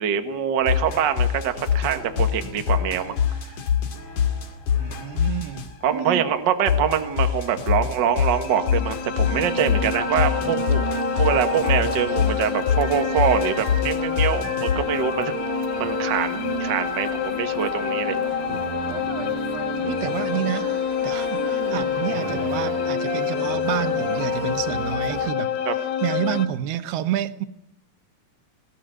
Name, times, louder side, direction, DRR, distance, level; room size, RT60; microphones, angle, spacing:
voice 1, 0.0-3.2 5.8-10.8 11.2-15.3 15.8-18.2 25.6-25.7, right 8 dB, 50° right, 7 dB, 1.4 m, -24 dB
sound 1, 0.6-5.9 6.7-14.7, left 8 dB, 55° left, 3.8 m, -24 dB
voice 2, 4.8-6.2 19.2-19.3 19.8-20.7 21.0-25.5 26.0-27.5, right 12 dB, 90° right, 12 dB, 3.1 m, -29 dB
sound 2, 8.1-26.5, left 9 dB, 75° left, 3.0 m, -27 dB
sound 3, 9.2-25.3, right 9 dB, 75° right, 2.8 m, -33 dB
19.5 x 18.5 x 9.2 m, 0.84 s
omnidirectional pair, 4.4 m